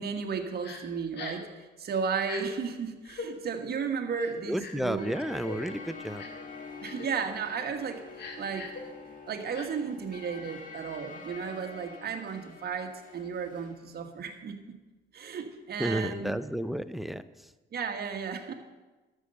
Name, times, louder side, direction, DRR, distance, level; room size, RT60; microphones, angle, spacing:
voice 1, 0.0-1.5 1.8-5.1 6.8-8.0 8.4-8.7 9.3-14.6 15.1-16.3 17.7-18.5, right 6 dB, 50° right, 4 dB, 1.6 m, -34 dB
Crying sobbing, 0.6-0.8 1.1-1.5 2.2-2.4 3.0-3.3 4.2-4.9 5.4-5.6 6.2-6.4 6.8-7.1 7.5-7.7 8.1-8.8 9.5-9.7, left 4 dB, 60° left, 2.0 m, -41 dB
voice 2, 4.5-6.2 15.8-17.3, equal, ahead, 14 dB, 0.6 m, -32 dB
sound 1, 5.0-13.8, left 4 dB, 40° left, 2.2 m, -46 dB
12.5 x 6.7 x 6.9 m, 1.2 s
cardioid pair, 90°, 20 cm